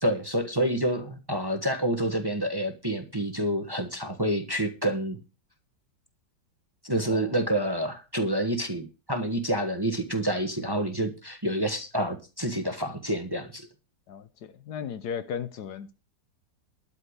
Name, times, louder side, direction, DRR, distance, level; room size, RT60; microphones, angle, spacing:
voice 1, 0.0-5.2 6.8-13.7, right 1 dB, 15° right, 1.2 m, -28 dB
voice 2, 14.1-15.9, left 7 dB, 65° left, 1.3 m, -36 dB
12.0 x 5.7 x 8.1 m
omnidirectional pair, 2.0 m